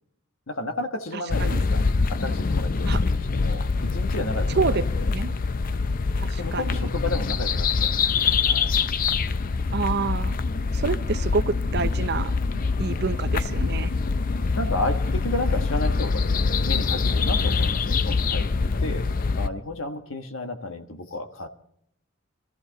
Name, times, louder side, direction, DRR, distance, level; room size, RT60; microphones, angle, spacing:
voice 1, 0.5-1.8 2.1-4.7 6.4-8.7 14.5-18.5 18.8-19.1 19.4-21.5, left 2 dB, 75° left, 7 dB, 1.4 m, -32 dB
voice 2, 1.1-1.7 2.9-3.0 4.5-4.8 5.1-5.4 6.2-6.9 9.7-10.3 10.7-13.9, right 4 dB, 50° right, 13 dB, 0.6 m, -28 dB
sound 1, 1.3-19.5, left 4 dB, 45° left, 0.5 m, -24 dB
23.5 x 14.0 x 4.0 m, 0.70 s
head